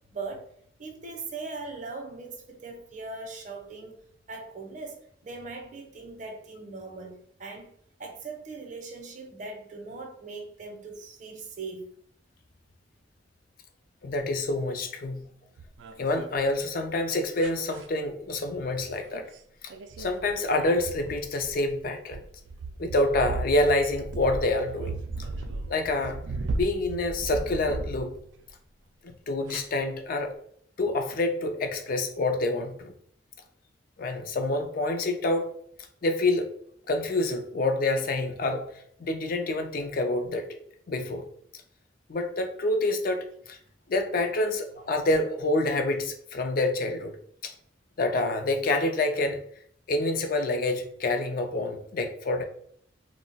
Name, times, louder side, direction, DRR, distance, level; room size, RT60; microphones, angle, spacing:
voice 1, 0.1-0.5 0.8-4.0 4.3-11.9, right 3 dB, 45° right, 2 dB, 0.6 m, -40 dB
voice 2, 14.0-15.3 16.0-19.2 20.0-22.2 22.8-24.9 25.7-26.2 26.5-28.2 29.0-30.3 30.8-32.9 34.0-35.5 36.0-36.5 36.9-38.7 39.0-40.5 40.9-41.3 42.1-43.6 43.9-47.2 48.0-49.4 49.9-52.4, left 2 dB, 50° left, 6 dB, 0.4 m, -27 dB
sound 1, 15.6-16.5 17.4-17.9 19.1-19.4 19.7-28.5 29.5-29.6, right 3 dB, 80° right, 0.3 m, -36 dB
2.3 x 2.0 x 3.8 m, 0.63 s
head